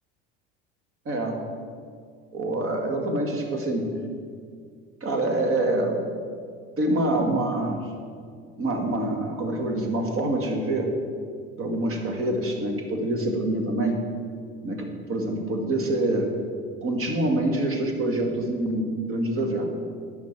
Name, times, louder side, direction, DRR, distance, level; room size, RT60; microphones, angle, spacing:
voice 1, 1.1-1.4 2.3-3.9 5.0-6.0 6.8-7.9 8.6-10.9 11.6-14.0 14.6-16.3 16.8-19.7, right 1 dB, 45° right, 3 dB, 2.2 m, -26 dB
10.5 x 6.0 x 7.4 m, 2.1 s
supercardioid pair, 90°, 32 cm